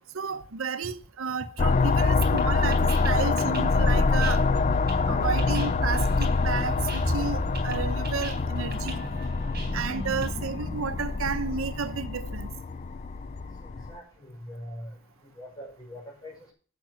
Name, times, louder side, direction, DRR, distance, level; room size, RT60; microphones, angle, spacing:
voice 1, 0.1-4.5 5.1-9.0 9.7-12.5, right 5 dB, 80° right, 0.7 m, -32 dB
sound 1, 1.6-13.9, left 4 dB, 35° left, 0.4 m, -26 dB
sound 2, 1.7-10.3, right 3 dB, 45° right, 3.7 m, -42 dB
voice 2, 5.1-5.5 13.4-13.5 13.9-14.9 15.4-16.5, equal, 20° left, 5.3 m, -42 dB
sound 3, 5.2-12.1, right 1 dB, 5° right, 2.5 m, -35 dB
11.0 x 6.0 x 6.2 m
head